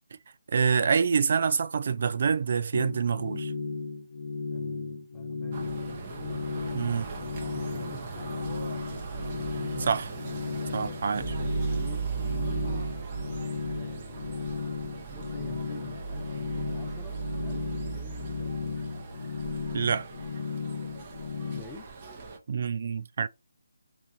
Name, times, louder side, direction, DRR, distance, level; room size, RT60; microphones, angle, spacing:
voice 1, 0.5-3.5 6.7-7.1 9.8-10.1 10.7-11.3 19.7-20.1 22.5-23.3, right 6 dB, 50° right, 0.3 m, -26 dB
sound 1, 2.7-21.6, left 4 dB, 55° left, 0.6 m, -35 dB
voice 2, 4.5-6.4 7.2-8.5 11.1-12.9 13.6-18.8 21.5-21.9, left 3 dB, 10° left, 0.5 m, -49 dB
sound 2, 5.5-22.4, right 5 dB, 30° right, 0.8 m, -37 dB
3.0 x 2.4 x 3.9 m
figure-of-eight pair, 155°, 0 cm